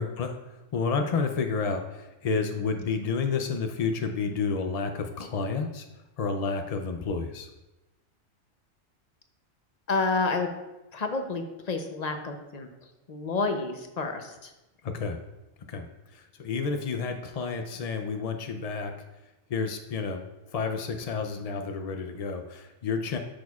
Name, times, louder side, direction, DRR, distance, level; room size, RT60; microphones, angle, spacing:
voice 1, 0.0-5.9 6.2-7.5 14.8-15.2 15.7-18.9 19.5-23.2, left 5 dB, 75° left, 5 dB, 0.3 m, -30 dB
voice 2, 9.9-10.5 10.9-12.7 13.1-14.5, left 3 dB, 40° left, 5 dB, 0.6 m, -29 dB
11.0 x 6.2 x 2.4 m, 1.0 s
omnidirectional pair, 1.4 m